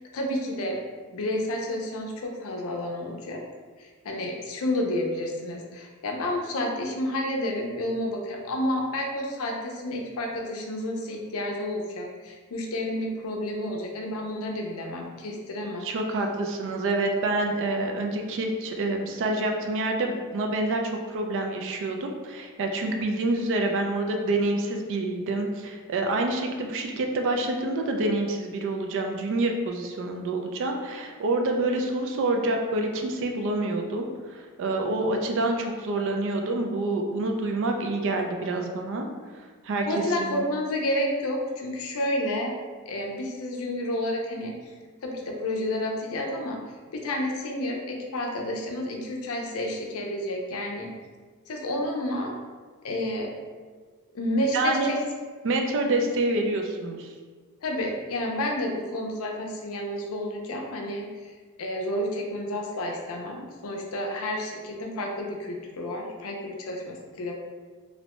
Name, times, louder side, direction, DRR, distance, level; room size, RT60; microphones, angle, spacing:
voice 1, 0.1-0.8 1.1-3.4 3.8-15.9 39.9-42.5 42.9-44.5 45.0-46.6 46.9-50.9 51.5-52.3 52.8-53.3 54.1-55.0 57.6-61.1 61.6-67.3, left 1 dB, 65° left, 1 dB, 0.5 m, -30 dB
voice 2, 15.8-39.1 39.4-39.9 40.2-40.4 54.5-54.9 55.4-57.1, right 2 dB, 60° right, 3 dB, 0.4 m, -27 dB
2.6 x 2.1 x 2.9 m, 1.5 s
head